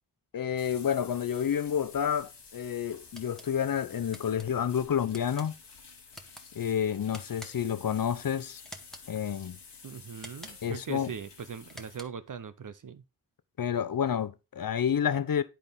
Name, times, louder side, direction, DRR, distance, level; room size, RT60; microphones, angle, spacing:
voice 1, 0.3-5.5 6.5-8.6 9.1-9.6 10.6-11.1 13.6-15.4, left 8 dB, 55° left, 0.7 m, -29 dB
sound 1, 0.6-12.0, left 5 dB, 75° left, 1.4 m, -51 dB
sound 2, 3.1-3.5 4.1-4.5 5.1-5.5 6.1-6.4 7.1-7.7 8.6-9.1 10.1-10.7 11.6-12.3, equal, ahead, 1.2 m, -48 dB
voice 2, 9.8-13.0, right 7 dB, 50° right, 0.6 m, -40 dB
10.0 x 4.1 x 3.5 m
cardioid pair, 50°, 41 cm